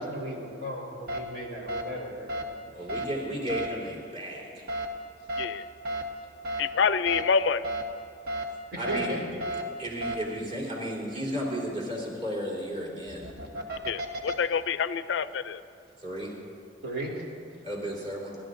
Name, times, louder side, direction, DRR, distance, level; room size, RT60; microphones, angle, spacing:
voice 1, 0.0-2.6 8.7-9.2 16.8-17.1, right 1 dB, 85° right, -3 dB, 3.3 m, -35 dB
sound 1, 1.1-1.2 1.7-1.8 2.3-2.4 2.9-3.0 3.5-3.7 4.7-4.9 5.3-5.4 5.9-6.0 6.4-6.6 7.1-7.2 7.6-7.8 8.3-8.4 8.8-9.1 9.4-9.6 10.0-10.2 13.0-14.3, right 1 dB, 55° right, 1.2 m, -32 dB
voice 2, 2.7-4.7 8.8-9.3 9.8-13.3 16.0-16.3 17.6-18.4, equal, 40° right, -4 dB, 3.9 m, -34 dB
voice 3, 6.6-7.7 13.9-15.6, left 6 dB, 75° left, 14 dB, 0.4 m, -27 dB
29.5 x 12.5 x 2.6 m, 2.6 s
head